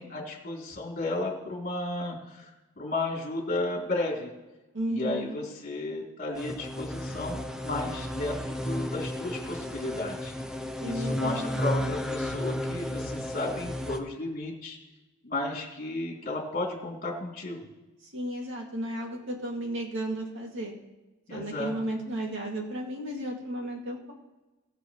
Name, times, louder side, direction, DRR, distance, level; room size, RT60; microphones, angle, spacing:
voice 1, 0.0-2.5 2.8-4.3 4.9-10.3 10.8-14.8 15.2-17.6 21.3-21.7, left 2 dB, 35° left, -2 dB, 3.3 m, -33 dB
voice 2, 4.7-5.4 10.8-11.9 18.0-20.7 21.3-24.1, right 1 dB, 55° right, 0 dB, 2.4 m, -34 dB
sound 1, 6.3-14.0, equal, 5° right, 0.6 m, -33 dB
21.5 x 7.6 x 3.2 m, 1.1 s
head